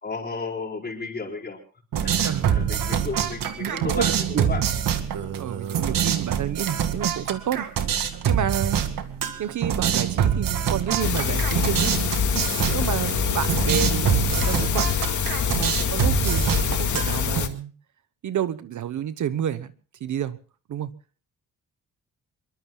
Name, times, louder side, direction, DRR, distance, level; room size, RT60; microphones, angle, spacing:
voice 1, 0.0-1.6 2.0-4.6, left 4 dB, 30° left, 4.7 m, -33 dB
sound 1, 1.9-17.4, right 8 dB, 80° right, 2.1 m, -25 dB
voice 2, 2.2-2.7 3.6-4.4 5.4-7.7 8.2-8.8 9.4-12.0 12.6-14.9 15.5-17.7 18.2-19.7 20.0-20.4 20.7-20.9, right 9 dB, 65° right, 1.1 m, -29 dB
sound 2, 11.0-17.5, left 7 dB, 65° left, 2.1 m, -25 dB
26.5 x 23.0 x 2.3 m
wide cardioid pair, 140°, 33 cm